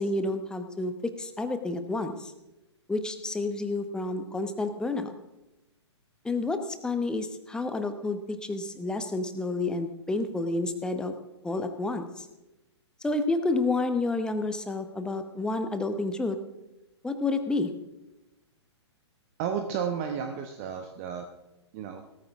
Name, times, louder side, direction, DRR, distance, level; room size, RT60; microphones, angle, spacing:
voice 1, 0.0-2.3 2.9-5.1 6.2-11.1 11.4-12.3 13.0-16.4 17.0-17.7, left 2 dB, 5° left, 8 dB, 1.0 m, -30 dB
voice 2, 19.4-21.3 21.7-22.0, right 7 dB, 30° right, 5 dB, 1.1 m, -32 dB
18.0 x 14.0 x 3.6 m, 0.97 s
figure-of-eight pair, 115°, 15 cm